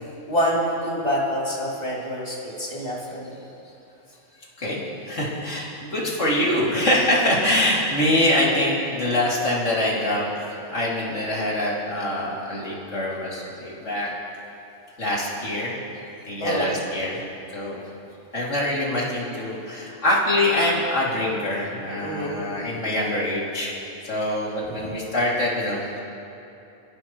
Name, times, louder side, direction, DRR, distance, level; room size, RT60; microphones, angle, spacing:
voice 1, 0.3-3.3 6.7-6.8 16.4-16.7 22.0-22.4, equal, 30° left, -6 dB, 3.3 m, -26 dB
voice 2, 4.6-14.1 15.0-15.7 16.3-17.2 17.5-17.8 18.3-26.0, left 1 dB, 70° left, -5 dB, 3.1 m, -24 dB
29.5 x 12.0 x 3.1 m, 2.8 s
omnidirectional pair, 1.3 m